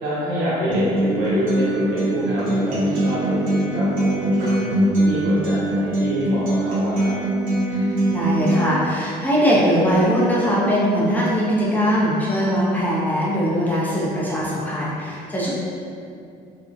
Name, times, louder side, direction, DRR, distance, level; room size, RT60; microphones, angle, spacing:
voice 1, 0.0-4.7 5.0-7.1, equal, 85° right, -10 dB, 1.1 m, -26 dB
Acoustic guitar, 0.7-8.7, right 1 dB, 55° right, 0.8 m, -22 dB
voice 2, 7.7-15.5, equal, 10° left, -7 dB, 0.5 m, -21 dB
2.5 x 2.0 x 2.5 m, 2.5 s
cardioid pair, 110°, 17 cm